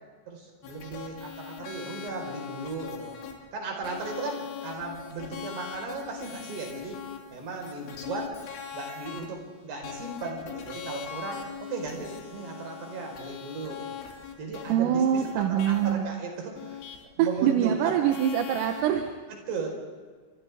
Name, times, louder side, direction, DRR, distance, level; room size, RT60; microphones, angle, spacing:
voice 1, 0.3-3.2 3.5-7.0 7.3-8.3 8.7-14.0 14.4-16.8 17.2-18.0 19.3-19.7, right 4 dB, 55° right, 1 dB, 6.5 m, -36 dB
sound 1, 0.6-3.3 3.8-9.3 9.8-15.9 16.6-17.0 18.1-19.1, left 8 dB, 70° left, 5.3 m, -41 dB
voice 2, 14.7-16.0 17.4-19.0, right 9 dB, 80° right, 4 dB, 3.8 m, -24 dB
29.0 x 26.5 x 3.6 m, 1.5 s
omnidirectional pair, 6.0 m